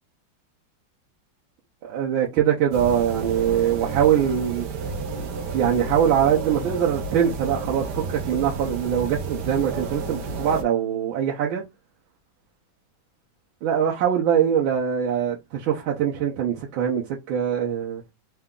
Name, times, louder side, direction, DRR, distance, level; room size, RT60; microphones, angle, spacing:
voice 1, 1.8-4.6 5.5-11.6 13.6-18.0, right 9 dB, 85° right, 1.5 m, -23 dB
sound 1, 2.7-10.6, right 4 dB, 65° right, 1.2 m, -31 dB
3.7 x 2.3 x 3.6 m
omnidirectional pair, 2.2 m